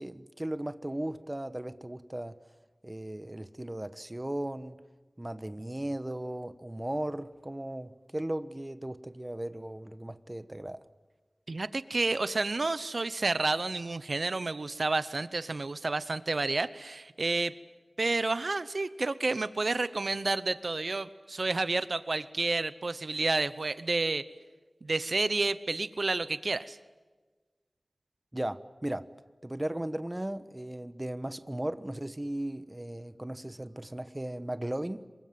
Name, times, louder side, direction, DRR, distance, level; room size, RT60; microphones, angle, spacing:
voice 1, 0.0-2.4 2.8-4.8 5.2-10.8 28.3-29.1 29.4-35.0, right 1 dB, 20° right, 1.2 m, -36 dB
voice 2, 11.5-17.5 18.0-24.3 24.8-26.8, right 3 dB, 75° right, 0.9 m, -30 dB
27.0 x 24.0 x 7.7 m
wide cardioid pair, 65°, 0 cm